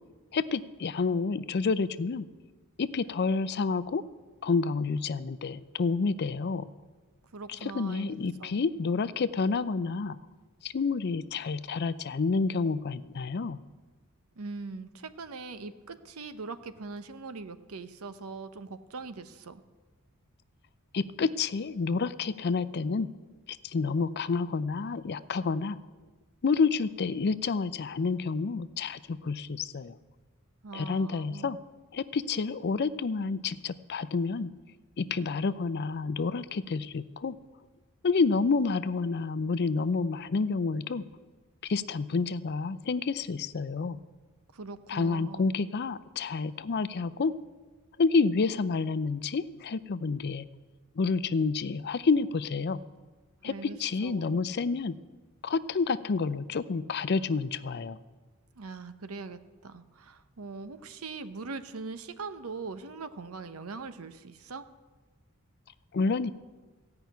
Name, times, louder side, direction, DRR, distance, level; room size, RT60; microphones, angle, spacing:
voice 1, 0.3-2.3 2.8-4.0 4.4-6.6 7.6-10.2 10.6-13.6 20.9-23.1 23.5-25.8 26.4-30.0 30.7-31.6 31.9-34.5 35.0-37.3 38.0-41.0 41.6-44.0 44.9-47.3 48.0-50.5 51.0-52.8 53.4-53.5 53.8-54.9 55.4-58.0 65.9-66.3, left 4 dB, 50° left, 15 dB, 0.5 m, -29 dB
voice 2, 7.3-8.6 14.4-19.6 30.6-31.5 44.5-45.5 53.4-54.4 58.6-64.6, right 4 dB, 80° right, 11 dB, 0.8 m, -41 dB
15.5 x 5.8 x 9.3 m, 1.3 s
head